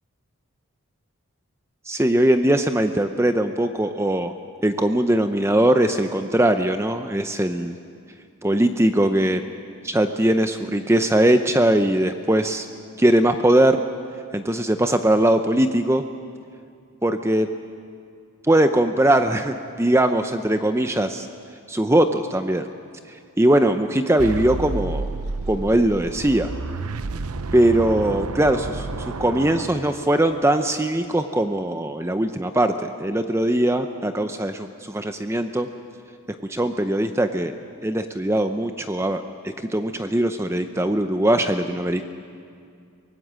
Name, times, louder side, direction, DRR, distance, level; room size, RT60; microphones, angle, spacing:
voice 1, 1.9-4.3 4.6-7.7 8.4-9.4 9.8-12.7 13.0-13.8 14.3-16.0 17.0-17.5 18.4-21.3 21.7-22.7 23.1-25.1 25.5-26.5 27.5-28.9 29.2-35.7 36.5-37.5 37.8-42.0, right 1 dB, 10° right, 8 dB, 0.6 m, -20 dB
sound 1, 24.2-30.4, right 3 dB, 85° right, 0.7 m, -31 dB
23.5 x 19.0 x 7.6 m, 2.3 s
head